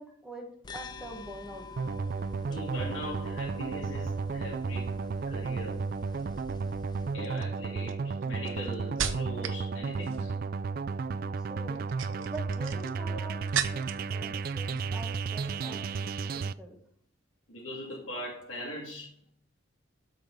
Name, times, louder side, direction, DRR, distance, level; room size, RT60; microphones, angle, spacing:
voice 1, 0.0-1.7 11.4-11.8 12.3-13.4 13.7-13.8 14.1-15.8 16.2-16.8, right 1 dB, 5° right, 0 dB, 1.7 m, -44 dB
sound 1, 0.6-7.1, left 3 dB, 20° left, 0.4 m, -47 dB
sound 2, 1.8-16.5, right 4 dB, 50° right, 0.3 m, -33 dB
voice 2, 2.5-4.9 5.3-5.8 7.1-10.3 12.0-12.2 13.1-13.2 13.7-13.8 17.5-19.1, equal, 85° left, -5 dB, 2.4 m, -41 dB
sound 3, 6.2-6.5 7.2-9.6 9.9-10.4 11.7-14.1 14.4-15.1 15.4-15.6, right 7 dB, 85° right, 0.9 m, -36 dB
12.5 x 5.4 x 4.0 m, 0.64 s
head